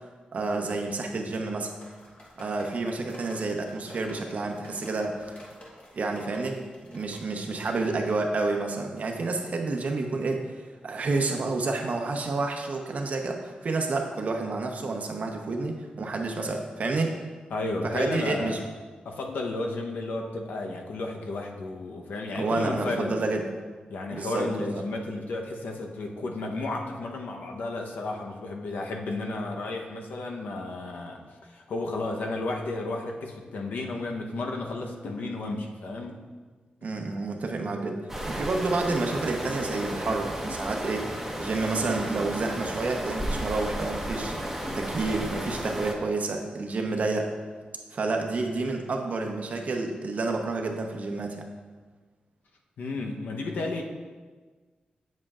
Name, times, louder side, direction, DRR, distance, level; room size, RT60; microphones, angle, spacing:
voice 1, 0.3-1.7 2.4-5.4 5.9-6.6 6.9-10.5 10.8-17.1 17.8-18.6 22.3-23.5 24.1-24.8 36.8-38.0 38.3-41.1 41.4-47.3 47.9-51.4, right 3 dB, 55° right, 3 dB, 0.8 m, -29 dB
sound 1, 1.8-7.9, left 1 dB, 40° left, 1.3 m, -49 dB
voice 2, 17.5-18.7 19.0-23.2 23.9-36.2 52.8-53.8, left 2 dB, 85° left, 1 dB, 0.8 m, -33 dB
sound 2, 38.1-45.9, equal, 10° right, 1.0 m, -33 dB
7.6 x 7.4 x 2.4 m, 1.4 s
wide cardioid pair, 105°, 3 cm